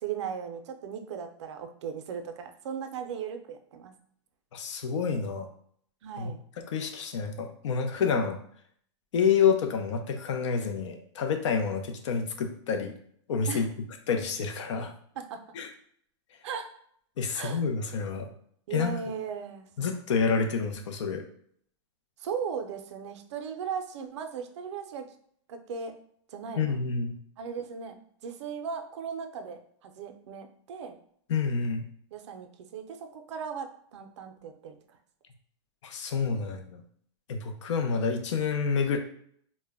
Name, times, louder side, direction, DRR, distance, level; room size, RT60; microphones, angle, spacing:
voice 1, 0.0-3.9 6.0-6.4 13.5-13.7 15.2-15.4 16.4-16.7 17.3-17.6 18.7-19.7 22.2-25.1 25.5-25.9 26.3-26.8 27.4-28.0 28.2-31.0 32.1-34.8, right 6 dB, 75° right, 6 dB, 0.4 m, -37 dB
voice 2, 4.5-5.5 6.2-8.4 9.1-12.9 13.3-13.7 14.1-14.9 15.5-15.7 17.2-18.3 18.7-18.9 19.8-21.2 26.6-27.2 31.3-31.8 35.8-36.8 37.3-39.0, left 5 dB, 85° left, 6 dB, 0.5 m, -28 dB
2.1 x 2.0 x 3.4 m, 0.63 s
supercardioid pair, 170°, 15 cm